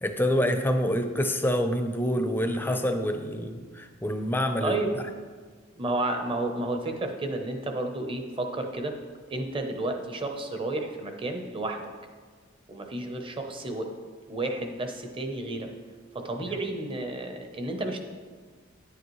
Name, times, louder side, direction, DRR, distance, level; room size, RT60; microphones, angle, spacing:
voice 1, 0.0-4.8, equal, 10° left, 6 dB, 0.5 m, -27 dB
voice 2, 4.6-4.9 5.7-9.0 9.3-11.9 12.7-13.9 14.3-15.7 16.1-18.0, right 2 dB, 25° right, 4 dB, 0.8 m, -31 dB
10.0 x 7.8 x 3.2 m, 1.5 s
head